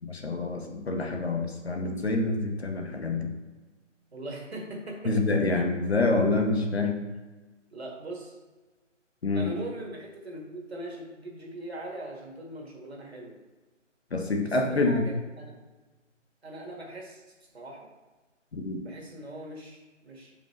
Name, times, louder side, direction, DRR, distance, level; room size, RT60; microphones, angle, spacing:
voice 1, 0.0-3.3 5.0-7.0 9.2-9.5 14.1-15.1 18.5-18.8, left 3 dB, 55° left, 2 dB, 1.0 m, -27 dB
voice 2, 4.1-5.1 7.7-8.3 9.3-13.4 14.4-15.0 15.4-15.5 16.4-17.2 17.5-17.9 18.8-20.3, right 1 dB, 55° right, 0 dB, 1.6 m, -40 dB
6.9 x 5.2 x 3.1 m, 1.2 s
figure-of-eight pair, 150°, 38 cm